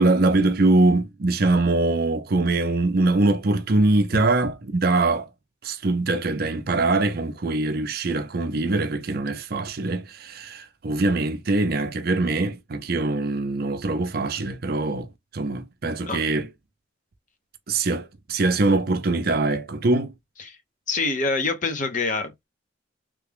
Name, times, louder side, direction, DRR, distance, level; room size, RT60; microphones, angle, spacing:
voice 1, 0.0-5.3 5.6-15.1 15.3-16.5 17.7-20.1, right 2 dB, 55° right, 0.6 m, -23 dB
voice 2, 20.9-22.4, left 3 dB, 45° left, 0.9 m, -26 dB
3.3 x 2.3 x 3.4 m
head